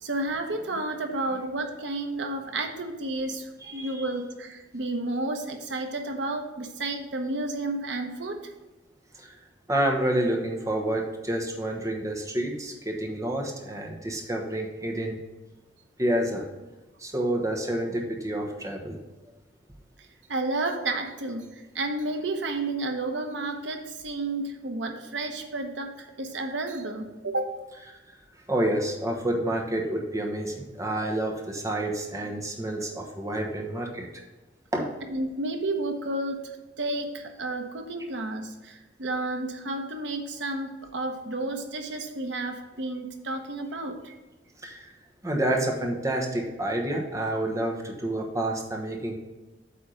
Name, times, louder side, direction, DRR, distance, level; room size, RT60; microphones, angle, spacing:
voice 1, 0.0-8.4 20.3-27.6 35.1-36.5 36.8-44.2, right 2 dB, 80° right, 4 dB, 1.0 m, -31 dB
voice 2, 3.6-4.1 9.2-9.4 9.7-15.2 16.0-16.5 17.0-19.0 27.9-28.0 28.5-34.2 34.7-35.0 44.6-44.9 45.2-49.1, right 1 dB, 20° right, 0 dB, 1.2 m, -29 dB
8.5 x 3.6 x 6.3 m, 1.1 s
head